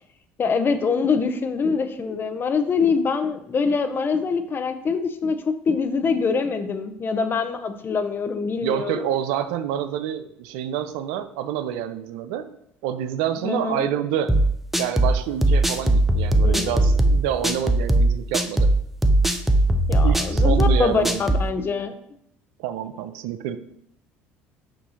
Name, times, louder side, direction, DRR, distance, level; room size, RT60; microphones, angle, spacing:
voice 1, 0.4-9.1 13.4-13.9 16.4-16.9 19.9-21.9, left 5 dB, 40° left, 9 dB, 0.8 m, -24 dB
voice 2, 8.6-12.5 12.8-14.4 14.8-18.7 20.0-21.3 22.6-23.6, right 10 dB, 80° right, 11 dB, 0.5 m, -27 dB
sound 1, 14.3-21.5, right 1 dB, 5° right, 0.6 m, -19 dB
6.8 x 2.6 x 5.7 m, 0.74 s
supercardioid pair, 75°, 6 cm